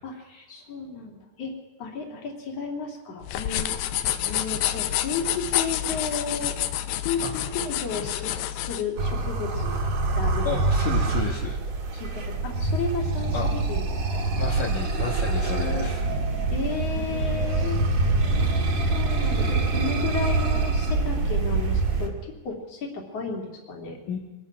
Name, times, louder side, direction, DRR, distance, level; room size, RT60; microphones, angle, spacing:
voice 1, 0.5-3.7 4.2-6.6 7.0-9.8 10.1-10.6 11.9-14.2 15.4-15.9 16.5-17.8 18.4-18.5 18.8-24.0, left 4 dB, 40° left, 1 dB, 4.0 m, -33 dB
sound 1, 3.2-8.8, left 12 dB, 80° left, 2.9 m, -28 dB
sound 2, 9.0-22.1, right 3 dB, 50° right, 3.1 m, -25 dB
voice 2, 10.5-11.6 13.3-13.5 14.4-16.0 24.1-24.2, left 4 dB, 55° left, -4 dB, 3.6 m, -31 dB
sound 3, 14.6-19.1, right 5 dB, 65° right, 5.3 m, -44 dB
24.0 x 21.5 x 6.1 m, 1.2 s
omnidirectional pair, 4.7 m